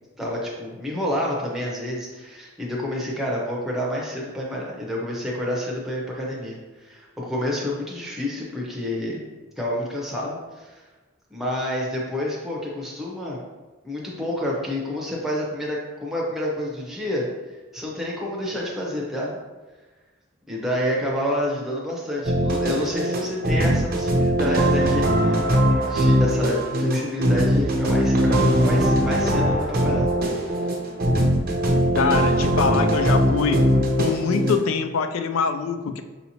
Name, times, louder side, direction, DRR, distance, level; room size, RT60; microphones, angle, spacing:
voice 1, 0.2-9.2 9.6-10.8 11.3-13.4 13.8-19.4 20.5-30.1 30.4-30.5, left 1 dB, ahead, -4 dB, 0.7 m, -29 dB
sound 1, 22.2-34.6, equal, 45° right, 0.6 m, -21 dB
voice 2, 31.9-33.7 34.0-36.0, left 5 dB, 80° left, 8 dB, 0.3 m, -24 dB
5.4 x 2.8 x 2.8 m, 1.2 s
head